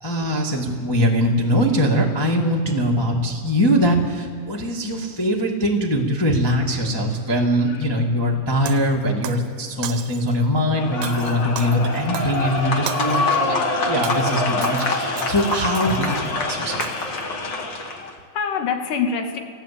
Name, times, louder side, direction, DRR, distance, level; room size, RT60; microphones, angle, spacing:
voice 1, 0.0-13.6 13.8-16.8, equal, 15° left, -1 dB, 0.9 m, -22 dB
Shatter, 8.7-9.5 9.8-10.4 11.0-13.4 13.8-16.4 16.8-17.2, right 10 dB, 75° right, 2.3 m, -36 dB
sound 1, 10.7-18.1, left 3 dB, 40° left, 1.9 m, -25 dB
voice 2, 17.7-19.4, left 6 dB, 70° left, 5 dB, 3.0 m, -26 dB
18.0 x 17.0 x 8.4 m, 2.5 s
omnidirectional pair, 4.1 m